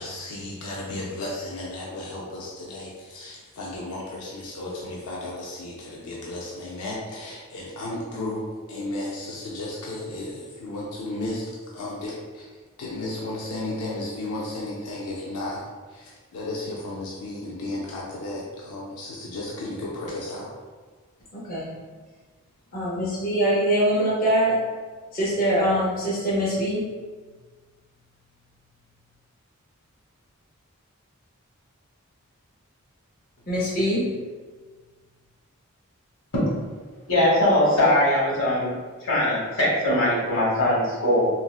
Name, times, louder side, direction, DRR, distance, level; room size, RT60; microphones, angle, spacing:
voice 1, 0.0-8.4 8.7-11.5 11.7-12.4 12.8-15.6 15.9-20.5, left 2 dB, 90° left, -4 dB, 0.5 m, -34 dB
voice 2, 21.3-21.7 22.7-24.6 25.1-26.8 33.5-34.0, right 1 dB, 40° left, -7 dB, 0.5 m, -23 dB
voice 3, 37.1-38.7 39.0-41.3, left 1 dB, 65° left, -6 dB, 1.2 m, -21 dB
3.9 x 2.0 x 2.3 m, 1.4 s
head